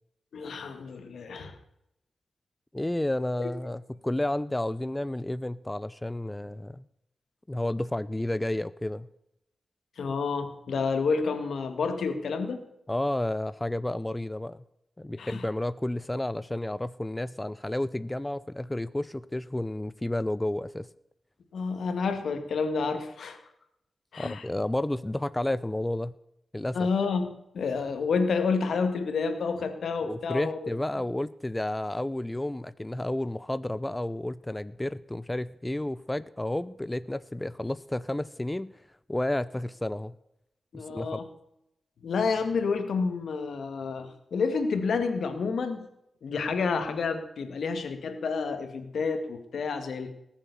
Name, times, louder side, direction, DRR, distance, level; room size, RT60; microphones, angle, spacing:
voice 1, 0.3-1.6 3.4-3.5 10.0-12.6 15.2-15.5 21.5-23.4 24.1-24.5 26.7-30.7 40.7-41.3 42.0-45.9 46.2-50.1, left 5 dB, 80° left, 8 dB, 2.0 m, -29 dB
voice 2, 2.7-6.8 7.5-9.1 12.9-14.6 15.0-20.9 24.2-26.1 26.5-26.8 30.0-38.7 39.1-40.1 40.7-41.2, left 1 dB, 15° left, 16 dB, 0.5 m, -31 dB
19.5 x 7.4 x 6.9 m, 0.82 s
cardioid pair, 75°, 0 cm